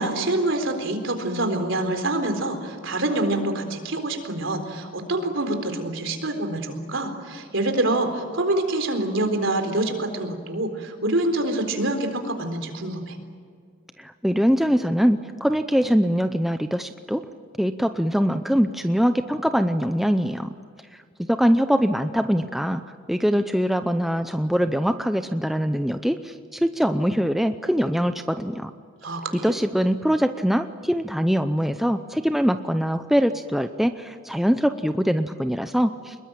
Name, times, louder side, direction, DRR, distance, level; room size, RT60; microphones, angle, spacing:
voice 1, 0.0-13.2 29.0-29.5, right 2 dB, 65° right, 5 dB, 4.0 m, -26 dB
voice 2, 14.0-17.2 17.6-20.5 21.3-22.8 23.1-28.7 29.4-36.1, equal, ahead, 8 dB, 0.6 m, -23 dB
25.5 x 21.5 x 9.0 m, 2.1 s
head